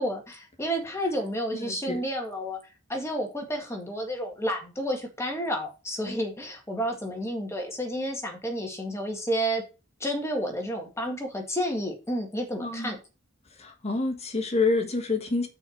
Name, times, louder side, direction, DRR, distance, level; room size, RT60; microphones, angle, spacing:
voice 1, 0.0-2.6 2.9-9.6 10.0-13.0, equal, 15° left, 1.9 m, -30 dB
voice 2, 1.5-2.0 12.6-13.0 13.6-15.5, left 3 dB, 30° left, 1.5 m, -28 dB
6.2 x 4.8 x 6.5 m
head